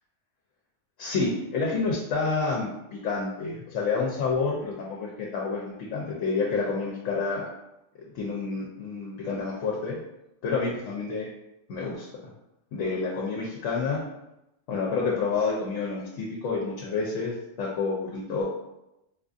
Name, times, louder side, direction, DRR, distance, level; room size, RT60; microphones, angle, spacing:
voice 1, 1.0-7.4 8.1-10.0 10.4-11.3 11.7-12.1 12.7-14.0 14.7-18.4, left 4 dB, 80° left, -3 dB, 1.0 m, -29 dB
4.0 x 2.5 x 2.4 m, 0.87 s
omnidirectional pair, 1.3 m